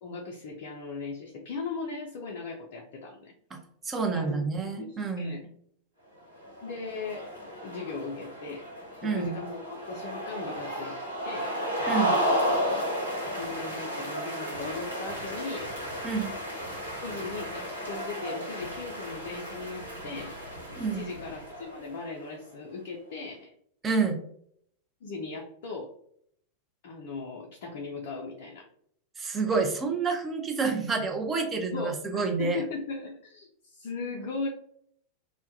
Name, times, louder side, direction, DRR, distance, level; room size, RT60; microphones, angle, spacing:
voice 1, 0.0-3.3 4.1-4.4 4.8-5.4 6.6-7.3 7.6-8.7 9.0-11.0 11.2-11.6 13.3-15.7 17.0-20.4 20.9-23.5 25.0-25.9 26.8-28.7 31.7-34.5, left 4 dB, 50° left, 0 dB, 0.4 m, -38 dB
voice 2, 3.8-5.4 9.0-9.3 11.9-12.1 16.0-16.3 20.8-21.1 23.8-24.2 29.2-32.6, right 4 dB, 20° right, 2 dB, 0.5 m, -28 dB
sound 1, 6.4-22.1, equal, 80° right, 0.7 m, -33 dB
2.2 x 2.1 x 2.7 m, 0.66 s
figure-of-eight pair, 90°, 0 cm